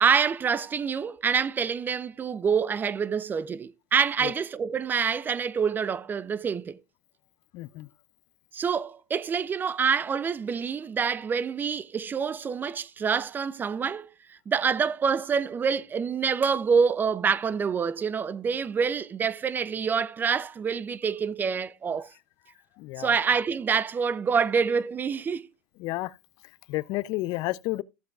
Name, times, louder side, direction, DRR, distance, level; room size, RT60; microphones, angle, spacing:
voice 1, 0.0-6.8 8.5-22.1 23.0-25.5, right 6 dB, 20° right, 0.4 m, -26 dB
voice 2, 7.5-7.9 22.8-23.1 25.8-26.2 26.7-27.8, left 19 dB, 50° left, 0.4 m, -31 dB
14.5 x 7.6 x 2.3 m
hypercardioid pair, 110°, 9 cm